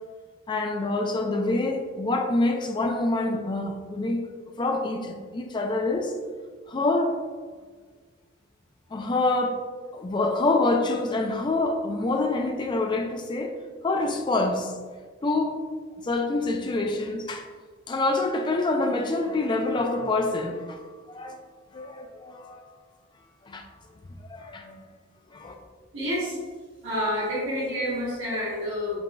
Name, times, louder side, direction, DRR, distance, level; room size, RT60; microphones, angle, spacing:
voice 1, 0.5-4.2 4.6-6.1 6.7-7.2 8.9-9.6 9.9-13.6 13.8-14.8 15.2-15.6 16.0-17.5 17.9-21.4 21.7-22.7 23.5-23.6 24.1-24.9 25.3-25.5, left 2 dB, 25° left, 4 dB, 0.3 m, -26 dB
voice 2, 25.9-26.4 26.8-29.0, equal, 80° right, -10 dB, 1.2 m, -28 dB
5.2 x 3.0 x 2.2 m, 1.5 s
head